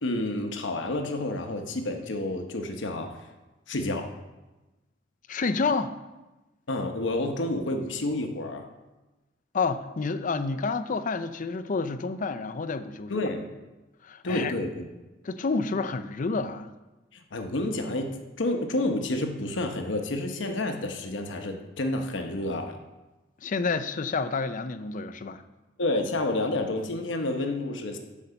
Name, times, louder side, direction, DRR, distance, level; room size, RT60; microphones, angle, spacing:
voice 1, 0.0-3.1 3.7-4.1 6.7-8.7 13.1-13.5 14.2-14.8 17.1-18.1 18.4-22.8 25.8-28.0, left 2 dB, 85° left, 4 dB, 0.9 m, -29 dB
voice 2, 5.3-6.0 9.5-13.3 14.0-14.5 15.2-16.7 23.4-25.4, left 4 dB, 45° left, 12 dB, 0.5 m, -29 dB
8.4 x 5.4 x 6.8 m, 1.1 s
head